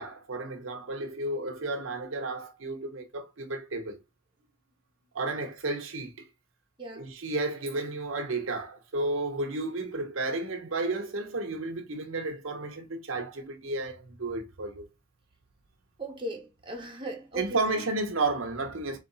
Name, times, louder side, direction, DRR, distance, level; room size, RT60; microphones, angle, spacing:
voice 1, 0.0-4.0 5.1-6.1 6.9-14.9 17.3-19.0, right 2 dB, 80° right, 0.9 m, -32 dB
voice 2, 6.8-7.1 16.0-17.9, right 1 dB, 25° right, 1.4 m, -38 dB
3.9 x 3.3 x 4.0 m
head